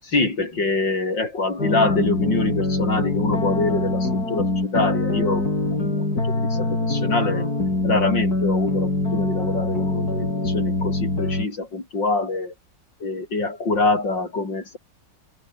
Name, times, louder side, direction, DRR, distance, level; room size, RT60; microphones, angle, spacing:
voice 1, 0.0-12.5 13.0-14.8, left 3 dB, 80° left, 6.1 m, -25 dB
sound 1, 1.6-11.5, left 2 dB, 55° left, 7.1 m, -24 dB
omnidirectional pair, 2.0 m